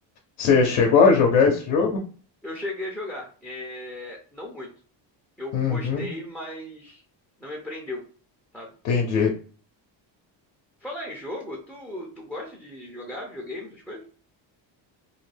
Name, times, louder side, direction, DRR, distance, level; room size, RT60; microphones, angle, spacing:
voice 1, 0.4-2.0 5.5-6.0 8.8-9.3, left 5 dB, 85° left, 1 dB, 0.7 m, -19 dB
voice 2, 2.4-4.7 5.4-7.0 7.4-8.0 8.5-8.7 10.8-14.0, left 1 dB, 5° left, -3 dB, 0.3 m, -36 dB
2.5 x 2.1 x 3.2 m, 0.41 s
cardioid pair, 140°, 47 cm